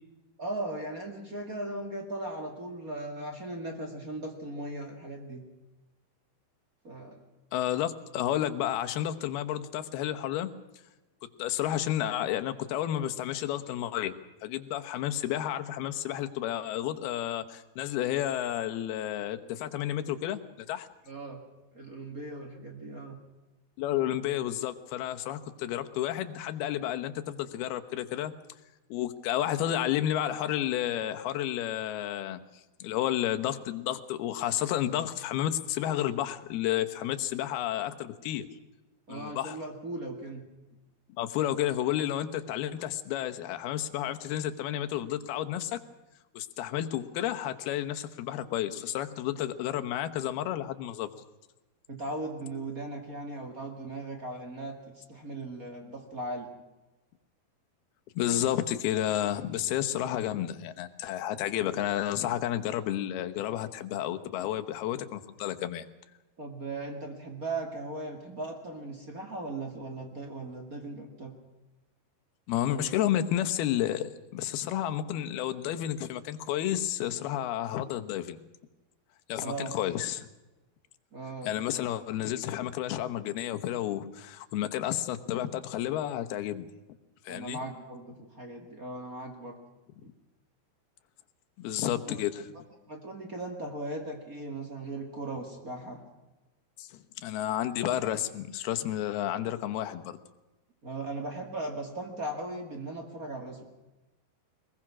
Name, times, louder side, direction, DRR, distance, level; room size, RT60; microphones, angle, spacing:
voice 1, 0.4-5.4 6.8-7.2 21.1-21.4 21.7-23.2 39.1-40.5 51.9-56.5 66.4-71.4 72.6-72.9 79.4-79.8 81.1-81.5 87.3-89.6 91.8-92.2 92.9-96.0 100.8-103.6, right 2 dB, 30° right, 3 dB, 1.9 m, -38 dB
voice 2, 7.5-10.5 11.4-14.1 14.4-20.4 20.7-20.9 23.8-28.3 28.9-32.4 32.8-38.5 39.1-39.6 41.2-45.8 46.3-51.1 58.2-65.9 72.5-78.4 79.3-80.3 81.4-86.7 87.2-87.6 91.6-92.5 96.8-100.2, left 12 dB, 80° left, 8 dB, 3.0 m, -31 dB
21.5 x 21.5 x 6.2 m, 1.1 s
omnidirectional pair, 4.6 m